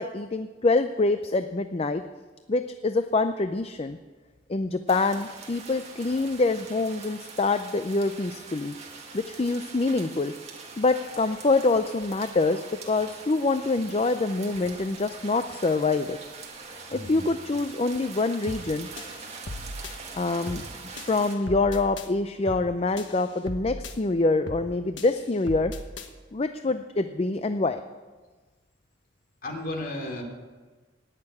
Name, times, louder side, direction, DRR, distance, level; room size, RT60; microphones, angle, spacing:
voice 1, 0.0-2.0 2.5-4.0 4.5-8.8 9.1-10.3 10.8-16.2 16.9-18.9 20.1-20.6 21.0-25.7 26.3-27.8, left 3 dB, 30° left, 9 dB, 0.5 m, -25 dB
sound 1, 4.9-21.4, right 4 dB, 35° right, 2.1 m, -43 dB
voice 2, 16.9-17.2 29.4-30.2, left 1 dB, 45° left, 2 dB, 2.8 m, -34 dB
sound 2, 18.5-18.7 19.0-20.0 20.5-20.7 21.0-22.1 22.5-22.7 23.0-24.0 24.5-24.7 25.0-26.1, left 1 dB, 70° left, 1.3 m, -38 dB
17.5 x 6.8 x 9.7 m, 1.3 s
head